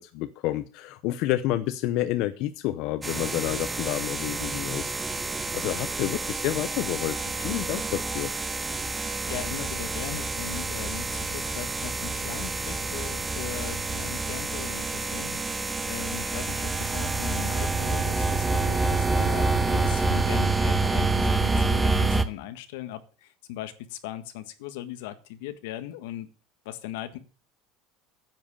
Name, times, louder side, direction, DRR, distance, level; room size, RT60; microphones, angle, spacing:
voice 1, 0.0-4.9 5.5-8.3, left 15 dB, 55° left, 0.7 m, -29 dB
sound 1, 3.0-22.2, right 3 dB, 10° right, 0.9 m, -28 dB
voice 2, 9.3-26.3 26.6-27.2, left 12 dB, 85° left, 1.6 m, -39 dB
10.5 x 7.7 x 7.1 m
cardioid pair, 160°, 0 cm